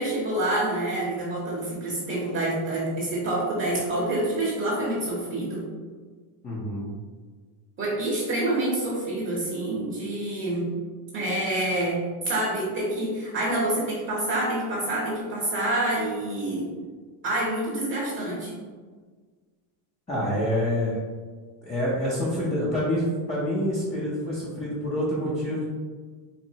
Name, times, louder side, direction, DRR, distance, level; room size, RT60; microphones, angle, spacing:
voice 1, 0.0-5.6 7.8-10.6 11.1-12.0 12.2-16.6 17.2-18.6, right 1 dB, 25° right, -5 dB, 0.7 m, -27 dB
voice 2, 6.4-6.9 20.1-21.0 21.6-25.7, equal, 15° left, -8 dB, 0.4 m, -27 dB
4.1 x 2.6 x 2.7 m, 1.5 s
cardioid pair, 155°, 49 cm